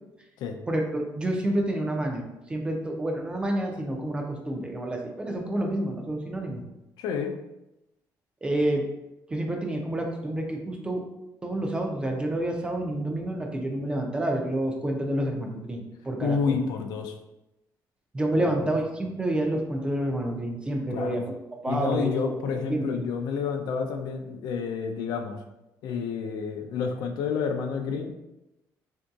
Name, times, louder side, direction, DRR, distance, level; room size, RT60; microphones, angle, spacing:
voice 1, 0.7-2.2 2.5-6.6 8.4-8.8 9.3-11.0 11.4-16.6 18.1-21.2 21.6-22.1 22.5-22.8, right 1 dB, 15° right, 2 dB, 0.4 m, -28 dB
voice 2, 7.0-7.3 16.2-17.1 18.4-18.6 20.9-21.2 21.7-25.4 25.8-28.1, left 5 dB, 70° left, 5 dB, 0.4 m, -29 dB
3.6 x 2.6 x 2.3 m, 0.94 s
cardioid pair, 160°, 7 cm